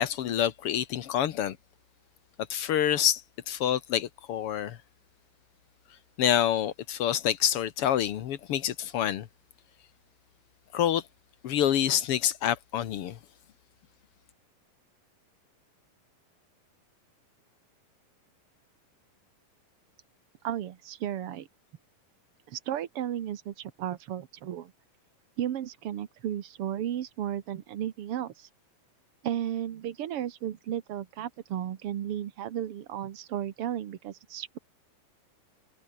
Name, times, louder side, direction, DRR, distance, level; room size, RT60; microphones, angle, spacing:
voice 1, 0.0-1.6 2.5-4.8 6.2-9.3 10.7-11.0 11.4-13.2, left 10 dB, 70° left, 1.4 m, -27 dB
voice 2, 20.4-21.5 22.5-24.7 25.4-28.5 29.2-34.6, right 11 dB, 65° right, 1.5 m, -34 dB
omnidirectional pair, 4.2 m